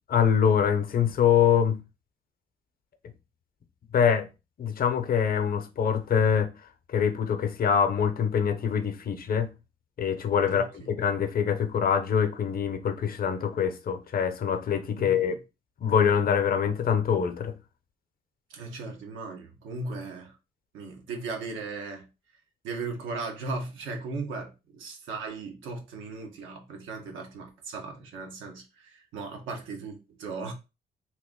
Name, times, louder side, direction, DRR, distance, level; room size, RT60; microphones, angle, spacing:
voice 1, 0.1-1.8 3.9-4.3 4.6-6.5 6.9-9.5 10.0-15.3 15.8-17.5, left 7 dB, 45° left, 0.7 m, -24 dB
voice 2, 10.5-10.9 15.0-15.3 18.5-20.4 20.7-22.1 22.6-30.5, right 3 dB, 90° right, 1.0 m, -37 dB
3.0 x 2.5 x 3.7 m
cardioid pair, 90°, 20 cm